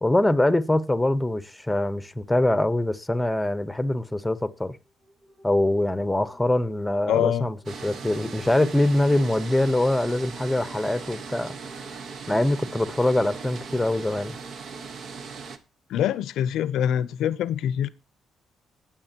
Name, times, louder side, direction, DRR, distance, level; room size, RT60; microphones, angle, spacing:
voice 1, 0.0-4.8 5.4-11.6 12.3-14.4, left 1 dB, 5° left, 0.9 m, -23 dB
sound 1, 4.8-14.3, right 1 dB, 30° right, 4.7 m, -53 dB
voice 2, 7.1-7.5 15.9-17.9, left 10 dB, 80° left, 0.6 m, -24 dB
sound 2, 7.7-15.6, right 5 dB, 60° right, 1.2 m, -39 dB
20.0 x 7.4 x 2.9 m
cardioid pair, 90°, 0 cm